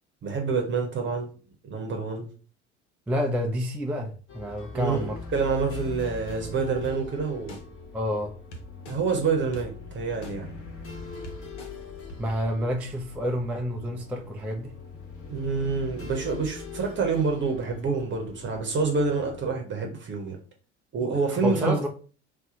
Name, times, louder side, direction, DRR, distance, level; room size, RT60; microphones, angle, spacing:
voice 1, 0.2-1.3 1.6-2.3 4.7-7.6 8.9-10.5 15.3-20.4 20.9-21.8, right 4 dB, 30° right, 0.8 m, -27 dB
voice 2, 3.1-5.2 7.9-8.3 12.2-14.7 21.3-21.9, equal, 5° right, 0.3 m, -29 dB
sound 1, 4.3-19.5, left 4 dB, 40° left, 1.1 m, -42 dB
sound 2, 6.8-6.9 7.5-7.6 8.5-9.0 9.5-9.6 10.2-10.3 10.9-11.0 11.2-11.7 12.1-12.2, right 1 dB, 80° left, 0.8 m, -41 dB
2.7 x 2.2 x 3.8 m
figure-of-eight pair, 65°, 35 cm